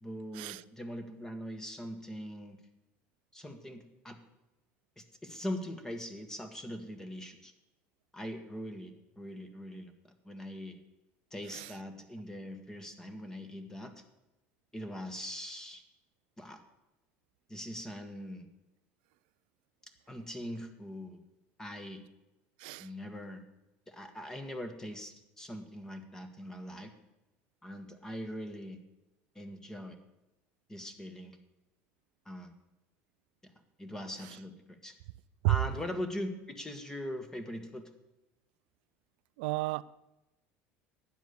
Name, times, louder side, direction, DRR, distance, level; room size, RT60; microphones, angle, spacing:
voice 1, 0.0-2.6 3.3-4.2 5.0-7.5 8.1-9.9 10.2-10.8 11.3-13.9 14.7-15.8 16.4-16.6 17.5-18.5 20.1-21.2 21.6-22.0 22.8-23.4 23.9-26.9 27.6-28.8 29.3-30.0 30.7-31.4 32.2-32.5 33.4-33.5 33.8-34.9 35.5-37.9, equal, 10° left, 8 dB, 1.6 m, -41 dB
voice 2, 39.4-39.8, right 22 dB, 90° right, 16 dB, 0.4 m, -31 dB
12.0 x 9.4 x 7.0 m, 0.99 s
cardioid pair, 125°, 5 cm